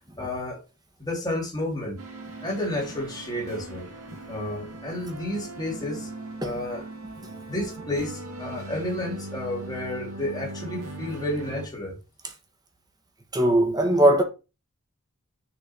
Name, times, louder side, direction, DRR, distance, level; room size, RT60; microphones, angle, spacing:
voice 1, 0.2-0.6 1.0-2.0 2.4-3.9 4.3-6.1 6.4-6.8 7.5-11.9, left 1 dB, 20° left, 3.1 m, -31 dB
sound 1, 2.0-11.7, right 2 dB, 80° right, 2.1 m, -39 dB
voice 2, 13.3-14.2, right 1 dB, 20° right, 1.6 m, -19 dB
6.8 x 4.5 x 6.2 m
head